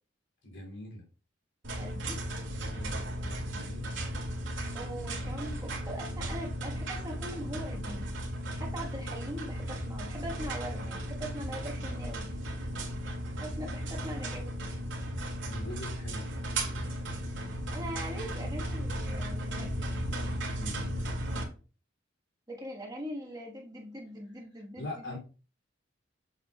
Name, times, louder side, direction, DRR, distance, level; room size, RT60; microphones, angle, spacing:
voice 1, 0.4-1.0 2.7-4.0 15.4-16.3 20.5-20.9 24.8-25.2, left 1 dB, 75° left, 2.7 m, -42 dB
sound 1, 1.6-21.4, right 1 dB, 75° right, 2.1 m, -35 dB
voice 2, 1.8-2.2 4.7-8.1 8.5-12.3 13.4-14.5 17.4-19.9 22.5-25.2, equal, 20° right, 1.3 m, -41 dB
7.4 x 6.5 x 2.3 m
head